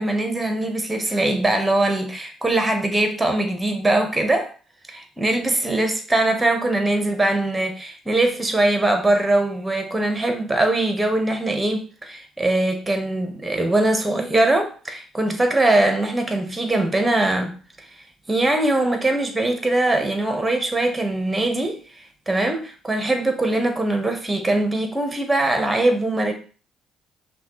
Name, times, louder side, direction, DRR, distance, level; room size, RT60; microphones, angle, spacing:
voice 1, 0.0-4.5 4.9-17.5 18.3-21.8 22.3-26.3, right 2 dB, 15° right, 5 dB, 1.1 m, -21 dB
5.5 x 2.3 x 3.1 m, 0.37 s
hypercardioid pair, 50°, 0 cm